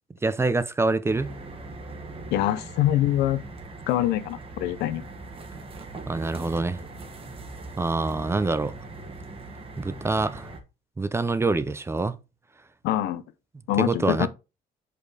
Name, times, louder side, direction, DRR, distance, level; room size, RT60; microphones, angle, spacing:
voice 1, 0.2-1.3 6.1-6.8 7.8-8.8 9.8-10.5 11.0-12.2 13.8-14.3, right 3 dB, 15° right, 0.5 m, -25 dB
Bats Settling into Trees, 1.1-10.6, right 2 dB, 35° right, 1.5 m, -40 dB
voice 2, 2.3-3.4 3.9-5.0 12.8-13.2 13.7-14.3, left 13 dB, 85° left, 0.6 m, -24 dB
5.4 x 4.4 x 4.8 m
cardioid pair, 110°, 17 cm